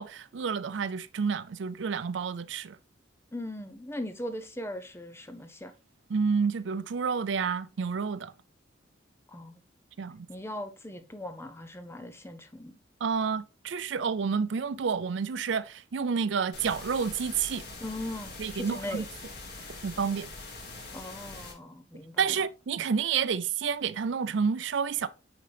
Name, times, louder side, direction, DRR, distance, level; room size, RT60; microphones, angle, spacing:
voice 1, 0.0-2.8 6.1-8.3 10.0-10.3 13.0-17.6 18.4-19.1 19.8-20.3 22.2-25.1, right 6 dB, 70° right, 0.4 m, -29 dB
voice 2, 3.3-5.7 9.3-9.6 10.3-12.8 17.8-19.1 19.6-19.8 20.9-22.3, left 1 dB, 15° left, 0.7 m, -39 dB
sound 1, 16.5-21.5, left 3 dB, 60° left, 2.0 m, -43 dB
9.1 x 3.8 x 3.4 m
head